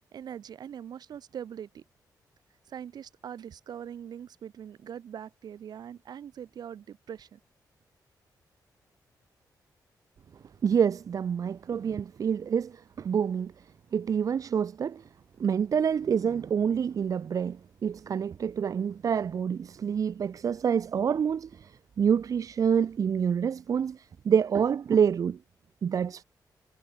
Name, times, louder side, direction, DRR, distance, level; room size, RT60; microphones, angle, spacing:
voice 1, 0.1-1.8 2.7-7.4, right 9 dB, 70° right, 3.5 m, -42 dB
voice 2, 10.6-13.5 13.9-15.0 15.4-21.7 22.0-25.4 25.8-26.2, right 7 dB, 50° right, 1.4 m, -27 dB
wide cardioid pair, 150°, 7 cm